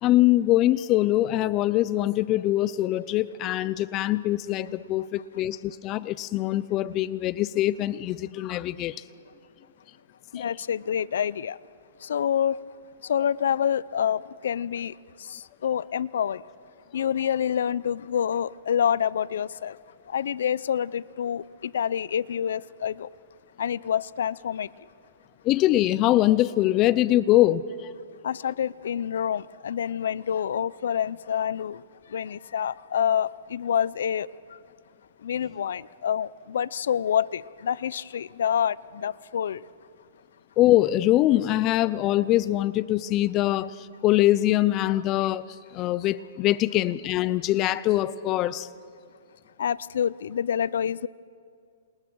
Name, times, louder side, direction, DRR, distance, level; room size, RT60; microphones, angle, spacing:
voice 1, 0.0-9.0 10.3-10.5 25.4-27.9 40.6-48.7, left 15 dB, 30° left, 18 dB, 0.5 m, -23 dB
voice 2, 10.3-11.6 12.0-12.6 13.0-14.9 15.3-16.4 16.9-19.8 20.1-23.1 23.6-24.7 28.2-31.8 32.1-34.3 35.2-39.6 49.6-51.1, left 8 dB, 75° left, 21 dB, 0.6 m, -27 dB
28.5 x 28.0 x 6.3 m, 2.3 s
hypercardioid pair, 150°, 0 cm